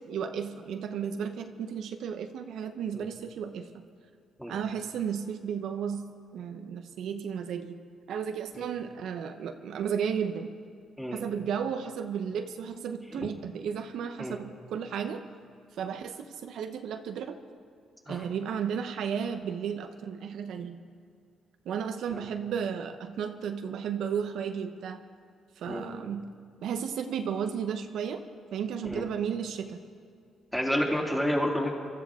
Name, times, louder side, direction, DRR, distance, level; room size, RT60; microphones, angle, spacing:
voice 1, 0.0-3.9 4.5-7.8 8.1-10.5 11.1-15.2 15.7-17.4 18.1-20.8 21.7-25.0 25.6-26.3 26.6-28.2 28.5-29.8, right 7 dB, 75° right, 7 dB, 0.9 m, -34 dB
voice 2, 30.5-31.7, equal, 5° left, -2 dB, 3.1 m, -30 dB
23.5 x 13.5 x 3.7 m, 2.4 s
cardioid pair, 90°, 0 cm